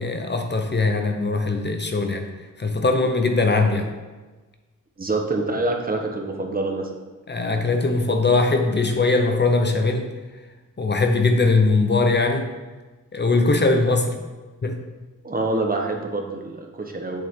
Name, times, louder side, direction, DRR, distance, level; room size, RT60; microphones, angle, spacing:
voice 1, 0.0-2.3 2.6-3.9 7.3-10.1 10.8-12.5 13.1-14.2 14.6-14.8, left 3 dB, 35° left, 5 dB, 0.7 m, -20 dB
voice 2, 5.0-6.9 15.2-17.2, right 2 dB, 30° right, 2 dB, 1.1 m, -26 dB
8.0 x 7.3 x 3.7 m, 1.3 s
wide cardioid pair, 135°, 31 cm